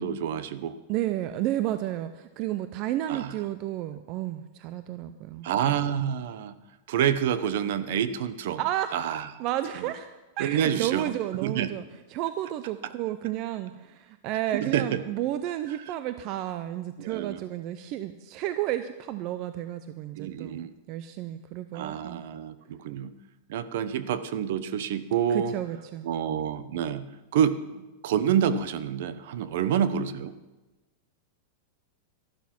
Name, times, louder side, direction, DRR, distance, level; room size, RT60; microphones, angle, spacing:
voice 1, 0.0-0.8 3.1-3.3 5.4-6.6 6.9-8.6 8.9-9.3 9.7-9.9 10.4-11.8 14.5-15.0 15.7-15.8 17.0-17.4 20.1-20.7 21.7-23.2 23.5-25.5 26.0-27.1 27.3-30.3, right 9 dB, 55° right, 14 dB, 0.8 m, -28 dB
voice 2, 0.9-5.5 8.6-8.9 9.4-10.1 10.4-11.8 12.1-22.2 25.3-26.1, right 13 dB, 30° right, 11 dB, 0.5 m, -32 dB
13.0 x 11.5 x 6.0 m, 1.1 s
supercardioid pair, 175°, 0 cm